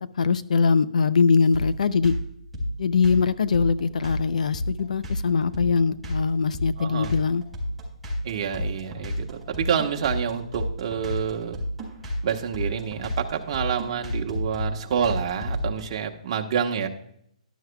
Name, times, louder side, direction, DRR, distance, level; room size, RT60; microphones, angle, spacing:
voice 1, 0.1-2.1 2.8-7.4, left 5 dB, 75° left, 15 dB, 0.6 m, -22 dB
sound 1, 1.5-15.8, equal, ahead, 4.3 m, -30 dB
voice 2, 6.8-7.1 8.2-11.6 12.2-16.9, right 7 dB, 45° right, 2 dB, 1.2 m, -28 dB
12.5 x 11.5 x 2.3 m, 0.71 s
hypercardioid pair, 150°, 4 cm